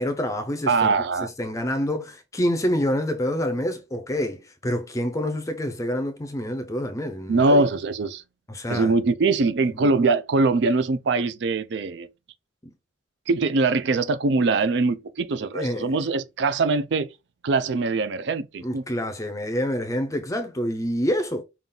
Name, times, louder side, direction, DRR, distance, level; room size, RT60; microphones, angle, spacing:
voice 1, 0.0-0.9 1.4-7.7 8.5-8.9 9.8-9.9 15.5-15.9 18.6-21.4, equal, 15° left, 0.5 m, -27 dB
voice 2, 0.7-1.3 7.3-8.2 8.7-12.1 13.3-17.1 17.4-18.8, right 3 dB, 60° right, 0.4 m, -22 dB
5.4 x 2.4 x 3.8 m
head